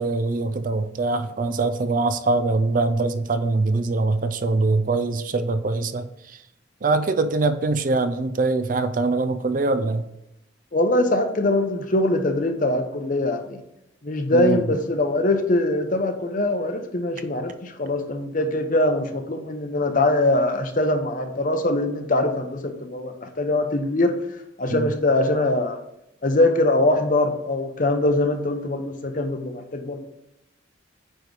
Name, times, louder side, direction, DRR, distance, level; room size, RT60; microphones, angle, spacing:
voice 1, 0.0-6.4 6.8-10.0 14.3-14.7 24.7-24.9, right 3 dB, 45° right, 10 dB, 0.4 m, -23 dB
voice 2, 10.7-13.6 14.0-24.1 24.6-25.8 26.2-30.0, left 2 dB, 40° left, 6 dB, 0.8 m, -22 dB
9.0 x 3.2 x 5.3 m, 0.83 s
head